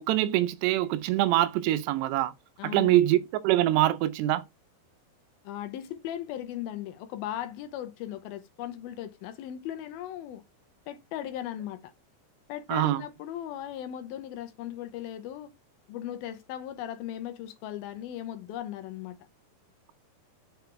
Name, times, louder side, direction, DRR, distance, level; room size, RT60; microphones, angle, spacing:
voice 1, 0.0-2.3 2.6-3.2 3.4-4.4 12.7-13.0, right 14 dB, 90° right, 2.8 m, -24 dB
voice 2, 2.6-3.0 5.4-10.4 10.9-11.9 12.5-15.5 15.9-19.2, left 11 dB, 75° left, 2.4 m, -37 dB
6.9 x 4.5 x 3.2 m
omnidirectional pair, 4.8 m